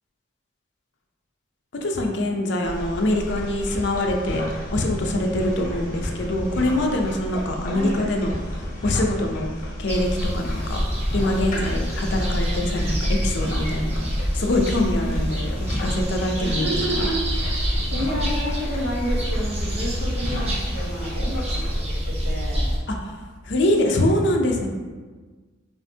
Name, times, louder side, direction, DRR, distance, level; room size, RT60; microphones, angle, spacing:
voice 1, 1.8-9.5 9.8-10.1 10.3-10.8 11.1-14.1 14.3-15.5 15.8-16.7 16.9-17.1 23.0-23.1 23.5-24.7, left 1 dB, 60° left, 2 dB, 0.5 m, -24 dB
sound 1, 2.6-21.8, left 1 dB, 45° left, 1.1 m, -32 dB
voice 2, 7.7-8.0 16.4-17.6 17.9-22.8, equal, 75° right, -4 dB, 1.1 m, -30 dB
sound 2, 9.9-22.8, equal, 30° right, 0.7 m, -27 dB
5.6 x 2.5 x 2.7 m, 1.4 s
head